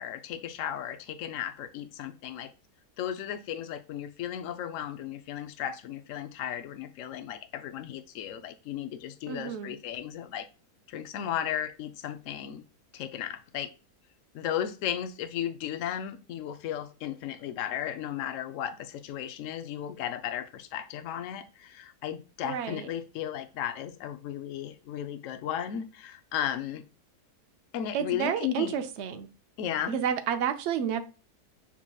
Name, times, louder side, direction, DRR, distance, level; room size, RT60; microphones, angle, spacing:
voice 1, 0.0-2.5 3.0-10.5 10.9-12.6 12.9-13.7 14.3-26.8 27.7-28.8 29.6-30.0, left 10 dB, 65° left, 0.8 m, -35 dB
voice 2, 9.3-9.7 22.4-22.9 27.9-29.3 29.9-31.0, right 8 dB, 65° right, 0.7 m, -30 dB
7.1 x 2.8 x 2.2 m
omnidirectional pair, 1.7 m